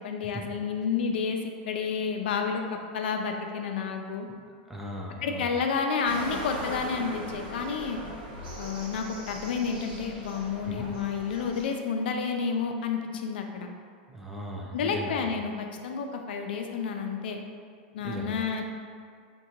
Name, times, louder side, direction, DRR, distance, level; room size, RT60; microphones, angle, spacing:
voice 1, 0.0-4.3 5.2-8.0 8.6-13.7 14.7-17.4 17.9-18.6, left 5 dB, 80° left, 3 dB, 0.3 m, -30 dB
voice 2, 4.7-5.6 10.7-10.9 14.1-15.3 18.0-18.3, right 1 dB, 5° right, -2 dB, 0.3 m, -38 dB
sound 1, 6.0-11.6, right 1 dB, 70° right, 0.9 m, -40 dB
3.6 x 2.2 x 2.8 m, 2.1 s
supercardioid pair, 150°, 5 cm